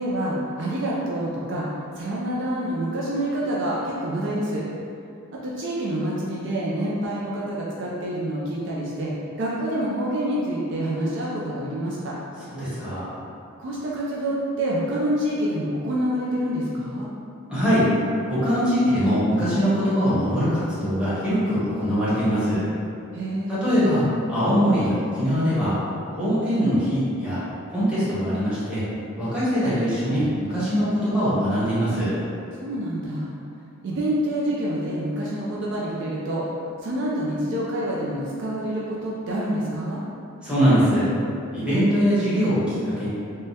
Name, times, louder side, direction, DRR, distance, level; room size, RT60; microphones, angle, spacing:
voice 1, 0.0-1.7 1.9-4.6 5.3-9.1 9.4-12.1 13.6-17.1 23.1-23.8 32.6-33.3 33.8-36.4 36.8-40.0, right 1 dB, 55° right, -6 dB, 0.4 m, -27 dB
voice 2, 12.5-13.1 17.5-17.9 18.3-22.6 23.5-24.0 24.3-25.7 26.1-27.4 27.7-28.8 29.2-32.1 40.4-41.0 41.5-43.1, equal, 5° right, -13 dB, 0.9 m, -22 dB
3.5 x 2.1 x 2.7 m, 2.6 s
head